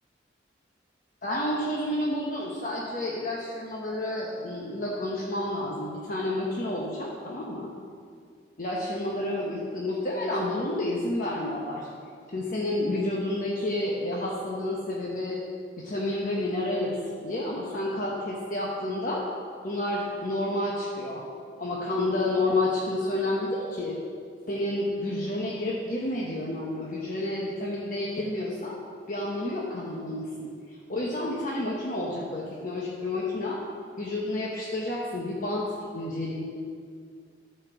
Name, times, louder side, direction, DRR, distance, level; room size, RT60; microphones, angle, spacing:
voice 1, 1.2-7.7 8.6-11.9 12.3-15.4 15.8-19.2 19.6-21.2 21.6-24.0 24.5-28.8 29.1-30.5 30.9-33.6 34.0-36.4, left 1 dB, 45° left, -4 dB, 1.0 m, -30 dB
12.5 x 4.5 x 6.8 m, 2.2 s
head